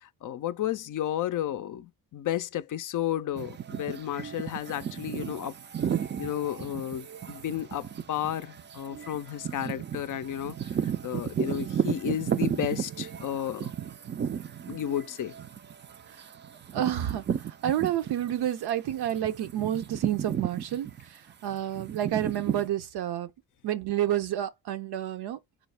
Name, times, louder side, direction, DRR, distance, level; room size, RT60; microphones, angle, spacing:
voice 1, 0.0-5.5 6.2-13.7 14.7-15.3, left 11 dB, 50° left, 0.4 m, -32 dB
sound 1, 3.3-18.5 18.8-22.7, right 8 dB, 30° right, 0.4 m, -34 dB
voice 2, 16.7-23.3 23.6-25.4, right 11 dB, 70° right, 0.6 m, -30 dB
3.6 x 2.0 x 3.2 m
hypercardioid pair, 40°, 41 cm